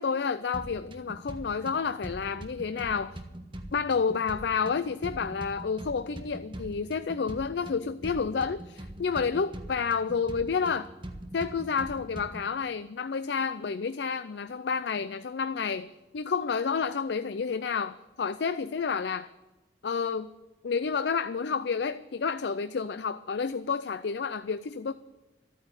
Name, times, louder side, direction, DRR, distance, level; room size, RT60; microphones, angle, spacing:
voice 1, 0.0-3.2 3.7-10.9 11.3-19.3 19.8-20.3 20.6-24.9, left 5 dB, 75° left, 13 dB, 0.5 m, -30 dB
sound 1, 0.5-12.5, right 1 dB, 25° right, 1.3 m, -43 dB
14.0 x 9.2 x 8.0 m, 1.1 s
head